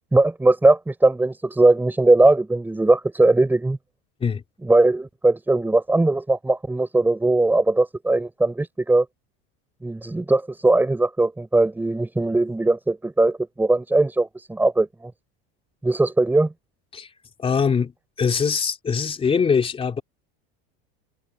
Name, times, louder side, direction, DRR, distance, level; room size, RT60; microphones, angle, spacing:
voice 1, 0.1-3.8 4.6-9.0 9.8-15.1 15.8-16.5, right 2 dB, 5° right, 4.7 m, -19 dB
voice 2, 17.4-17.9 18.2-20.0, left 6 dB, 20° left, 3.5 m, -22 dB
supercardioid pair, 155°, 30 cm